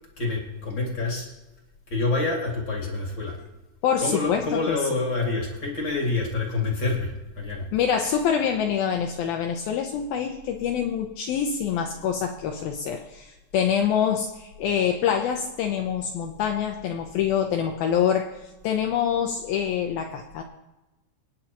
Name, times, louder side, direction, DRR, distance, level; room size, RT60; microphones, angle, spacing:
voice 1, 0.2-1.3 1.9-3.4 4.0-7.6, left 3 dB, 35° left, -1 dB, 2.0 m, -27 dB
voice 2, 3.8-4.9 7.7-20.4, left 8 dB, 85° left, 3 dB, 2.1 m, -25 dB
25.0 x 9.9 x 3.0 m, 1.1 s
omnidirectional pair, 5.3 m